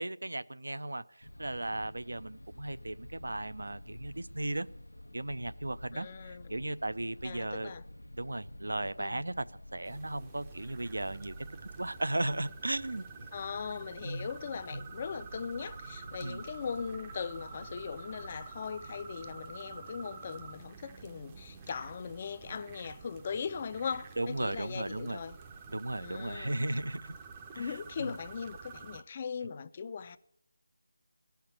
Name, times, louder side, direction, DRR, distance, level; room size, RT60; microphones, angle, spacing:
voice 1, 0.0-4.7 5.1-7.7 8.1-9.5 9.7-11.4 11.8-13.3 14.0-14.3 14.7-14.8 16.2-16.4 24.2-25.2 25.7-27.1 27.5-28.2, right 1 dB, 70° right, 0.5 m, -36 dB
sound 1, 1.2-19.6, left 1 dB, 85° left, 0.5 m, -51 dB
voice 2, 5.9-6.6 7.2-7.8 9.0-9.2 13.3-25.4 26.0-26.6 27.6-30.2, left 6 dB, 30° left, 0.4 m, -39 dB
sound 2, 9.8-29.0, right 5 dB, 20° right, 0.6 m, -49 dB
16.0 x 5.8 x 8.1 m
figure-of-eight pair, 160°, 0 cm